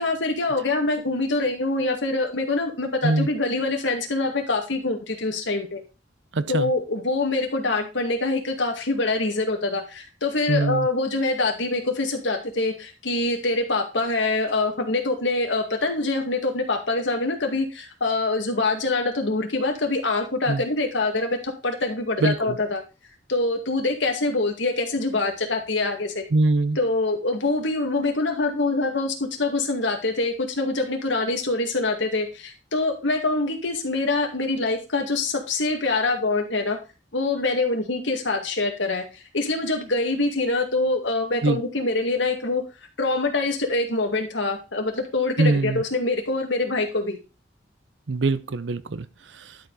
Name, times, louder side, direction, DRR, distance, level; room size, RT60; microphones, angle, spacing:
voice 1, 0.0-5.8 6.5-22.8 23.3-26.2 26.8-36.8 37.1-42.6 43.0-47.2, left 2 dB, 75° left, 2.2 m, -25 dB
voice 2, 6.3-6.7 10.5-10.9 20.5-20.6 22.2-22.6 26.3-26.8 41.4-41.6 45.4-45.8 48.1-49.6, right 2 dB, 70° right, 0.7 m, -23 dB
11.5 x 5.2 x 4.1 m
head